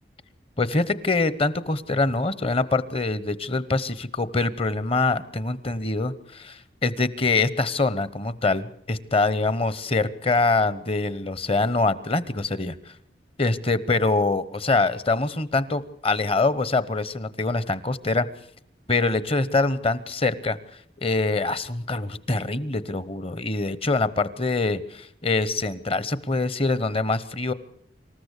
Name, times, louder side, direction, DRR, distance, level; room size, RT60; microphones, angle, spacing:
voice 1, 0.6-12.9 13.4-18.3 18.9-20.6 21.0-27.5, left 3 dB, 35° left, 17 dB, 1.0 m, -24 dB
26.0 x 14.5 x 8.3 m, 0.68 s
head